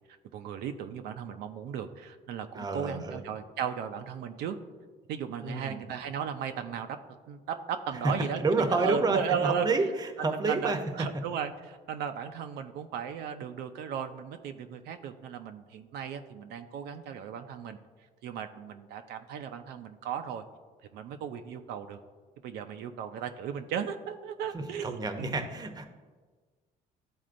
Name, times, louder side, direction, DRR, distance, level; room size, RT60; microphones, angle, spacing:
voice 1, 0.3-4.6 5.1-7.0 7.3-9.7 10.2-17.8 18.2-20.4 20.9-22.0 22.4-25.5, right 7 dB, 80° right, 7 dB, 0.5 m, -36 dB
voice 2, 2.5-3.2 5.4-5.8 8.0-8.1 8.4-10.8 24.5-25.8, right 3 dB, 25° right, 7 dB, 0.7 m, -29 dB
12.0 x 4.2 x 2.5 m, 1.4 s
cardioid pair, 110°, 17 cm